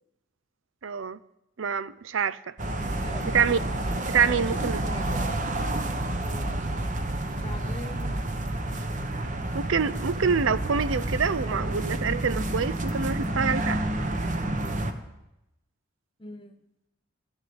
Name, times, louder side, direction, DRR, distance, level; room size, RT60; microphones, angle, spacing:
voice 1, 0.8-1.2 1.6-2.5 3.2-3.6 4.1-4.8 9.5-13.8, right 6 dB, 75° right, 0.6 m, -26 dB
sound 1, 2.6-14.9, right 1 dB, 40° right, 1.2 m, -29 dB
voice 2, 3.0-3.4 4.3-5.3 6.2-6.7 7.4-8.2 11.4-11.9 16.2-16.6, left 1 dB, 25° left, 1.2 m, -43 dB
14.0 x 11.5 x 8.0 m
head